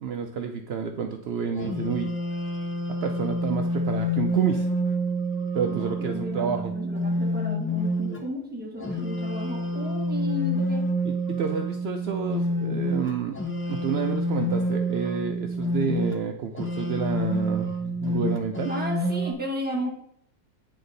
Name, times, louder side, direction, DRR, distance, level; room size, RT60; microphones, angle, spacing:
voice 1, 0.0-2.1 2.9-4.7 5.5-6.7 11.0-13.4 13.7-18.7, right 6 dB, 80° right, 5 dB, 0.5 m, -30 dB
sound 1, 1.5-8.2 8.8-16.2 16.6-19.3, equal, 15° left, 0.4 m, -28 dB
voice 2, 5.6-10.9 18.7-19.9, equal, 10° right, 0 dB, 0.8 m, -34 dB
9.6 x 3.4 x 3.9 m, 0.69 s
omnidirectional pair, 1.6 m